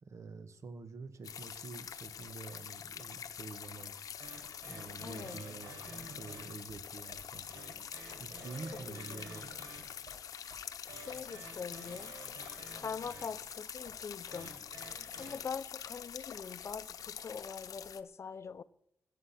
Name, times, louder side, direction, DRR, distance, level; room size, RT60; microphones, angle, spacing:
voice 1, 0.0-3.9 4.7-7.5 8.2-9.5, right 4 dB, 60° right, 1.4 m, -47 dB
sound 1, 1.2-18.0, left 8 dB, 85° left, 0.7 m, -46 dB
sound 2, 3.8-15.4, right 3 dB, 90° right, 6.8 m, -52 dB
voice 2, 5.0-5.4 8.9-9.3 10.9-12.1 12.7-14.5 15.2-18.6, left 6 dB, 50° left, 0.7 m, -43 dB
21.5 x 7.5 x 5.9 m
wide cardioid pair, 125°, 6 cm